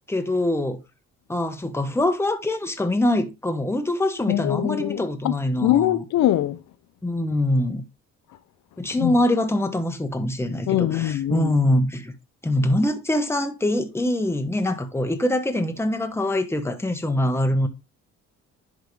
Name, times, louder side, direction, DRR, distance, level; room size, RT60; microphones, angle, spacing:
voice 1, 0.1-0.8 1.3-6.0 7.0-7.8 8.8-12.1 12.4-17.7, left 1 dB, 10° left, 1.1 m, -24 dB
voice 2, 4.3-5.3 5.6-6.6 9.0-9.2 10.7-11.5, left 12 dB, 65° left, 0.7 m, -22 dB
10.5 x 3.7 x 3.3 m
cardioid pair, 90°, 30 cm